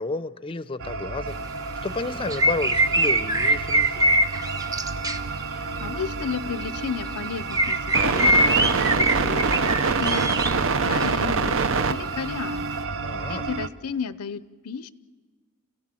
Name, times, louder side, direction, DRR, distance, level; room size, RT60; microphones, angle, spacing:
voice 1, 0.0-1.4 1.8-4.2 13.0-13.4, left 3 dB, 25° left, 14 dB, 0.6 m, -31 dB
sound 1, 0.8-13.7, right 4 dB, 65° right, 0.8 m, -27 dB
sound 2, 2.3-5.5 6.3-6.6 7.5-10.6 10.9-11.1, right 1 dB, 15° right, 0.7 m, -23 dB
voice 2, 5.6-9.5 10.0-11.6 11.9-12.7 13.3-14.9, left 6 dB, 85° left, 15 dB, 0.7 m, -33 dB
28.5 x 16.0 x 7.6 m, 1.5 s
head